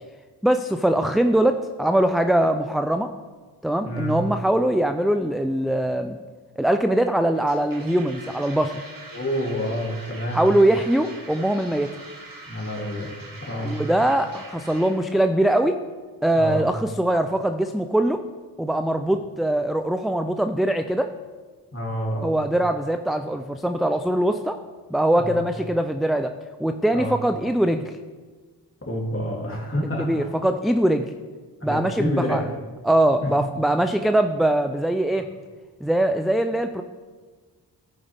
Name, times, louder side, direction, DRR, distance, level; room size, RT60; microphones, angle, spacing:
voice 1, 0.4-3.1 3.6-6.2 6.6-8.8 10.3-11.9 13.6-15.8 16.2-18.2 18.6-21.2 22.2-24.6 24.9-26.3 26.6-27.9 30.0-31.1 31.6-32.5 32.8-35.3 35.8-36.8, right 1 dB, ahead, 7 dB, 0.3 m, -22 dB
voice 2, 3.8-4.2 9.1-10.4 12.5-13.1 13.4-13.8 16.3-16.7 21.7-22.4 25.2-25.4 26.9-27.1 28.8-30.3 31.6-32.5 33.2-33.3, equal, 30° left, -3 dB, 2.9 m, -28 dB
sound 1, 7.4-15.0, right 2 dB, 50° right, 1.7 m, -43 dB
14.5 x 5.0 x 3.5 m, 1.4 s
cardioid pair, 40°, 42 cm